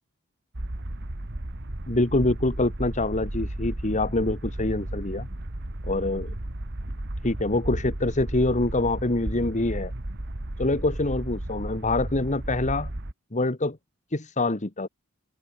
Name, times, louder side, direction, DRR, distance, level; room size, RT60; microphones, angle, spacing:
sound 1, 0.5-13.1, right 1 dB, 55° right, 2.0 m, -34 dB
voice 1, 1.9-5.3 5.8-6.3 7.2-9.9 10.6-12.9 13.3-13.8 14.1-14.9, left 2 dB, 35° left, 1.6 m, -25 dB
open air
head